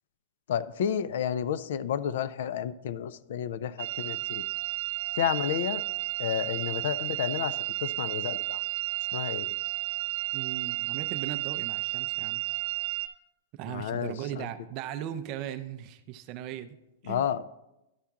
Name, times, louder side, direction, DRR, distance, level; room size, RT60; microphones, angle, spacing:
voice 1, 0.5-4.4 5.2-5.8 6.2-8.6 9.1-9.5 13.7-14.5 17.1-17.4, left 9 dB, 60° left, 16 dB, 0.4 m, -31 dB
sound 1, 3.8-13.1, right 19 dB, 85° right, 0.7 m, -32 dB
voice 2, 10.3-12.4 13.5-16.7 17.0-17.3, right 11 dB, 30° right, 10 dB, 0.4 m, -38 dB
11.5 x 5.7 x 3.6 m, 0.92 s
supercardioid pair, 175°, 0 cm